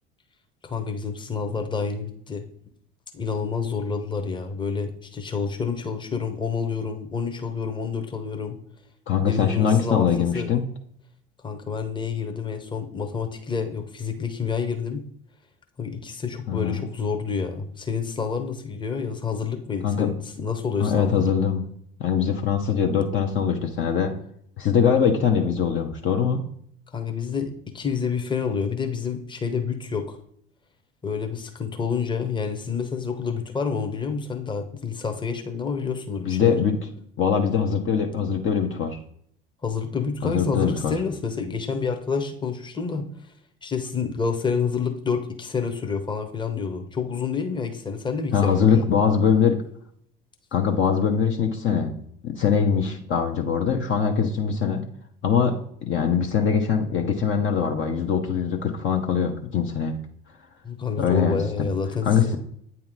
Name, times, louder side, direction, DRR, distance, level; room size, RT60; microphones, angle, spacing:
voice 1, 0.6-2.5 3.1-8.6 9.2-10.1 10.3-10.5 11.4-15.0 15.8-21.3 26.9-30.2 31.0-36.6 39.6-43.1 43.6-48.9 60.6-62.4, left 5 dB, 15° left, 5 dB, 0.9 m, -28 dB
voice 2, 9.1-10.6 16.5-16.8 19.8-20.1 20.8-21.6 22.0-24.2 24.6-26.4 36.2-36.8 37.2-39.0 40.2-40.9 48.3-49.6 50.5-54.8 55.2-55.6 55.8-60.0 61.0-61.7 62.0-62.4, left 7 dB, 40° left, 3 dB, 0.8 m, -22 dB
8.6 x 2.9 x 3.8 m, 0.66 s
hypercardioid pair, 65°, 29 cm